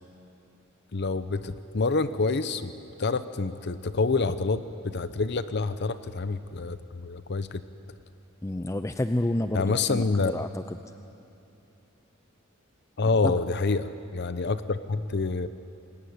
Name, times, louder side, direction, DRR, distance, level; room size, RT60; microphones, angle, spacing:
voice 1, 0.9-2.7 3.0-7.6 9.5-10.3 13.0-15.5, left 3 dB, 55° left, 12 dB, 0.8 m, -27 dB
voice 2, 8.4-10.6 13.2-13.4, left 1 dB, 15° left, 9 dB, 0.5 m, -29 dB
26.5 x 21.0 x 9.6 m, 2.8 s
head